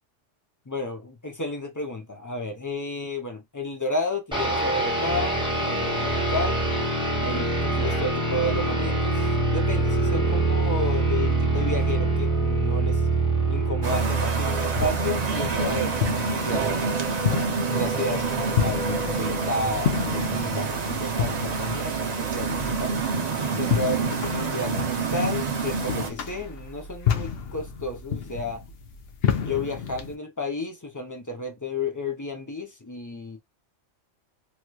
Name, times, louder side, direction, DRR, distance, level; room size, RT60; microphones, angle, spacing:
voice 1, 0.7-6.6 7.2-13.0 13.5-17.1 17.7-23.0 23.5-28.6 29.4-33.4, left 2 dB, 20° left, 0.5 m, -32 dB
sound 1, 4.3-16.5, right 2 dB, 5° right, 1.3 m, -25 dB
sound 2, 13.8-26.1, right 4 dB, 40° right, 0.6 m, -27 dB
sound 3, 14.7-30.1, left 8 dB, 60° left, 0.8 m, -31 dB
3.1 x 3.0 x 2.3 m
omnidirectional pair, 1.3 m